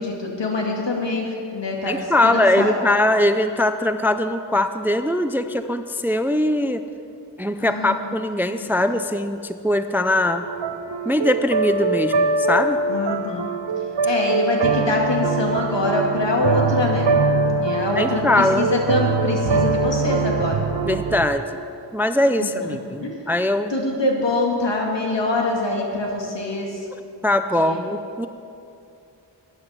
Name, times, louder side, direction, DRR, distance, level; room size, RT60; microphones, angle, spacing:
voice 1, 0.0-2.7 7.6-8.0 8.7-8.9 12.9-13.4 14.0-17.1 17.3-20.6 22.4-23.2 23.7-26.8 27.6-27.8, left 2 dB, 75° left, -1 dB, 2.3 m, -24 dB
voice 2, 1.9-6.8 7.4-10.5 11.1-12.8 18.0-18.7 20.8-21.4 21.9-23.7 26.9-28.3, left 1 dB, 5° right, 9 dB, 0.4 m, -21 dB
sound 1, 10.5-21.3, right 3 dB, 70° right, 0.8 m, -23 dB
13.0 x 9.9 x 5.8 m, 2.6 s
wide cardioid pair, 60°, 44 cm